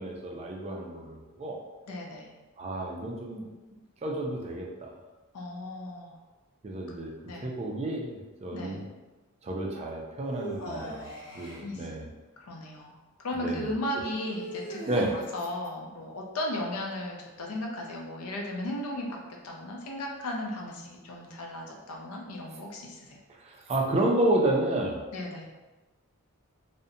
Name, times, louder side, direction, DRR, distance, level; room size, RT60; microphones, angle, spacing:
voice 1, 0.0-1.6 2.6-3.5 4.0-4.9 6.6-7.1 7.4-8.9 9.4-11.0 11.3-12.1 13.4-13.7 14.9-15.1 23.4-25.0, right 1 dB, 30° right, 0 dB, 0.3 m, -30 dB
voice 2, 1.9-2.3 5.3-6.1 7.3-7.5 8.5-8.8 10.6-11.9 12.4-19.2 19.4-23.2 25.1-25.5, left 1 dB, 75° left, 0 dB, 0.5 m, -36 dB
sound 1, 10.3-11.6 14.2-15.4, right 1 dB, 20° left, 0.6 m, -40 dB
2.6 x 2.1 x 2.5 m, 1.2 s
head